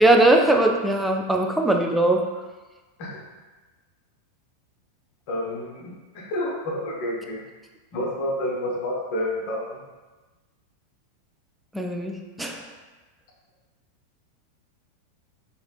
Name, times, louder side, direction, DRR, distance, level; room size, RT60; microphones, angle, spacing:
voice 1, 0.0-2.2 11.7-12.6, right 2 dB, 5° right, 2 dB, 0.3 m, -20 dB
voice 2, 5.3-7.4 7.9-9.8, left 1 dB, 45° left, -3 dB, 0.7 m, -29 dB
3.2 x 2.8 x 2.3 m, 1.2 s
figure-of-eight pair, 90°, 0 cm